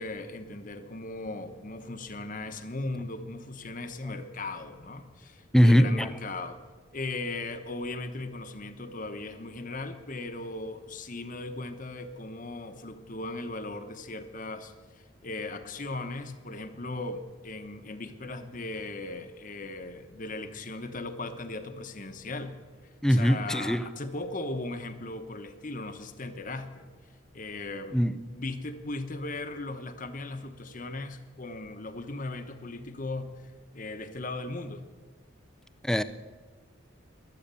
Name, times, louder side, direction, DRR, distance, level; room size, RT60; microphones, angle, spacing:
voice 1, 0.0-6.6 6.9-14.7 15.2-22.5 23.1-26.9 27.3-28.0 28.3-33.3 33.7-34.8, left 2 dB, 40° left, 1.1 m, -37 dB
voice 2, 5.5-6.1 23.0-23.8 27.9-28.1 35.8-36.0, equal, 5° left, 0.4 m, -21 dB
22.5 x 8.7 x 6.9 m
head